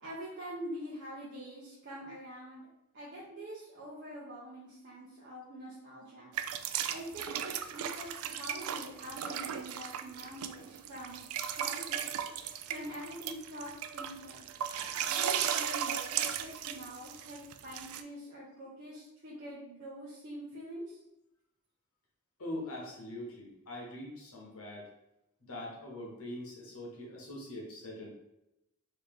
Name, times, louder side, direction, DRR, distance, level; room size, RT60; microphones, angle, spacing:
voice 1, 0.0-2.7 2.9-6.3 6.9-11.2 11.5-12.1 12.7-14.4 15.1-21.0, equal, 55° right, -7 dB, 0.8 m, -45 dB
sound 1, 6.3-18.0, right 9 dB, 90° right, 0.3 m, -36 dB
voice 2, 22.4-24.9 25.4-28.1, left 1 dB, 85° left, -2 dB, 1.2 m, -43 dB
3.2 x 2.8 x 3.7 m, 0.89 s
head